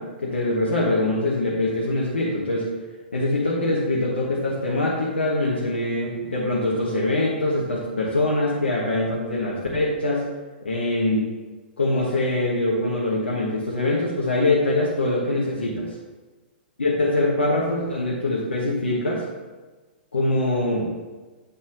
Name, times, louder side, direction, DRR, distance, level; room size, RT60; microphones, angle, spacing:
voice 1, 0.0-2.7 3.1-10.3 10.6-11.2 11.8-15.9 16.8-19.2 20.1-20.9, left 2 dB, 80° left, -5 dB, 1.2 m, -23 dB
8.2 x 4.2 x 3.9 m, 1.3 s
figure-of-eight pair, 110°, 6 cm